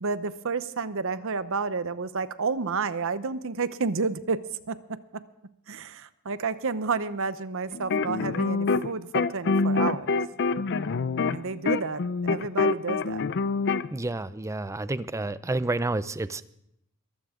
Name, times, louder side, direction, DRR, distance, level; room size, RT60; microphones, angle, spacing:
voice 1, 0.0-5.2 5.7-10.2 11.3-13.2, right 4 dB, 65° right, 13 dB, 0.8 m, -30 dB
sound 1, 7.7-8.9 9.1-13.9, left 4 dB, 55° left, 0.5 m, -25 dB
voice 2, 13.9-16.4, right 2 dB, 15° right, 15 dB, 0.5 m, -29 dB
22.0 x 14.5 x 3.7 m, 0.80 s
head